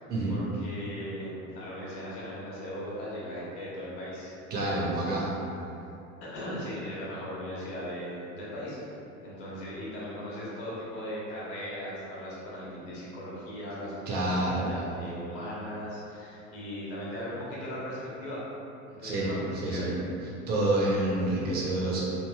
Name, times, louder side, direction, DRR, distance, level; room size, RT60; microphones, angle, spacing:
voice 1, 0.0-4.3 4.6-5.3 5.7-5.9 6.2-8.8 9.2-18.4 18.9-19.9, equal, 55° left, -7 dB, 1.1 m, -38 dB
voice 2, 4.5-5.2 14.1-14.7 19.0-19.3 19.6-19.9 20.5-22.0, right 2 dB, 25° right, -5 dB, 0.4 m, -28 dB
3.1 x 2.5 x 2.2 m, 2.8 s
figure-of-eight pair, 75°, 42 cm